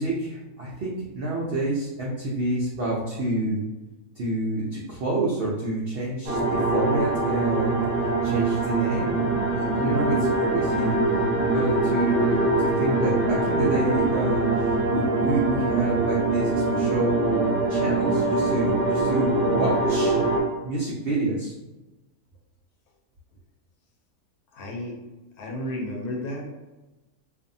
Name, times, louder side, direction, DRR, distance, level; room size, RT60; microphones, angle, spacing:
voice 1, 0.0-3.6 4.2-7.8 8.2-11.0 11.5-14.4 14.9-20.2 20.6-21.5, right 1 dB, 75° right, -4 dB, 0.5 m, -28 dB
sound 1, 6.3-20.4, right 2 dB, 35° right, 0.7 m, -23 dB
voice 2, 24.5-25.0 25.4-26.5, left 1 dB, 80° left, 0 dB, 1.1 m, -32 dB
2.5 x 2.4 x 2.6 m, 1.1 s
omnidirectional pair, 1.6 m